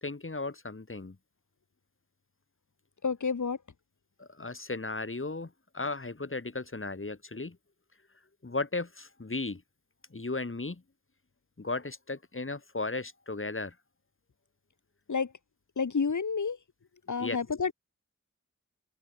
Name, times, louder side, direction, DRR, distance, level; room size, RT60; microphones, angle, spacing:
voice 1, 0.0-1.2 4.2-7.6 8.4-9.6 10.1-10.8 11.6-13.8 17.2-17.4, left 3 dB, 40° left, 3.7 m, -35 dB
voice 2, 3.0-3.6 15.1-15.3 15.8-16.6 17.1-17.7, left 5 dB, 70° left, 1.7 m, -29 dB
wide cardioid pair, 80°, 31 cm